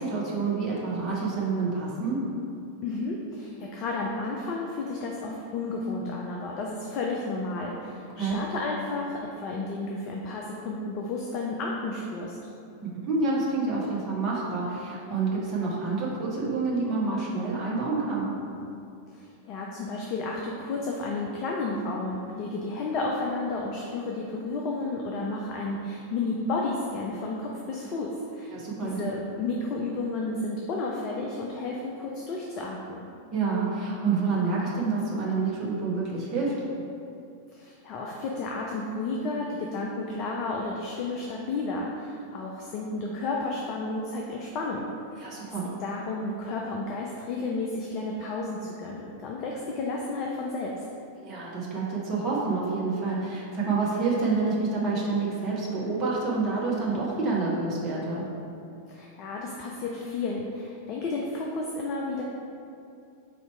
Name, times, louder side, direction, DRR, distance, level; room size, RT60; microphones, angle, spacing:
voice 1, 0.0-2.2 8.2-8.4 12.8-18.3 28.5-29.0 33.3-36.5 45.2-45.7 51.2-58.2, right 4 dB, 30° right, -6 dB, 0.9 m, -28 dB
voice 2, 2.8-12.4 19.1-28.5 28.8-33.1 37.5-44.9 45.1-45.3 45.8-50.8 58.9-62.2, left 3 dB, 40° left, -1 dB, 0.4 m, -32 dB
4.3 x 2.8 x 4.4 m, 2.5 s
figure-of-eight pair, 90°, 0 cm